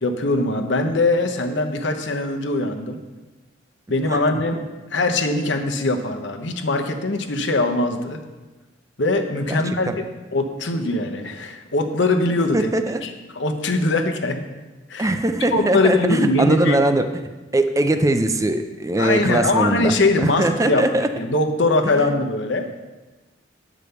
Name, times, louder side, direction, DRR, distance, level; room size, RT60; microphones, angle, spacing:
voice 1, 0.0-3.0 3.9-4.6 4.9-8.2 9.0-9.9 10.3-12.7 13.0-14.4 14.9-15.2 15.5-16.8 19.0-20.8 21.2-22.7, left 2 dB, 70° left, 4 dB, 1.0 m, -21 dB
voice 2, 9.5-10.0 12.5-13.1 15.0-17.1 17.5-21.1 22.0-22.1, right 1 dB, 15° right, 8 dB, 0.5 m, -21 dB
9.5 x 5.1 x 6.8 m, 1.2 s
head